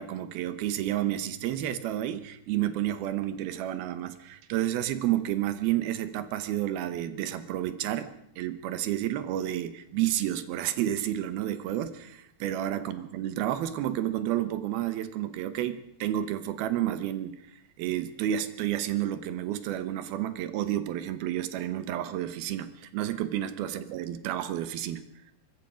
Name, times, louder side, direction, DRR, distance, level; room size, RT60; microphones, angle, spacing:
voice 1, 0.0-17.4 17.8-25.1, right 12 dB, 85° right, 11 dB, 3.0 m, -30 dB
24.5 x 21.5 x 5.1 m, 0.76 s
omnidirectional pair, 4.2 m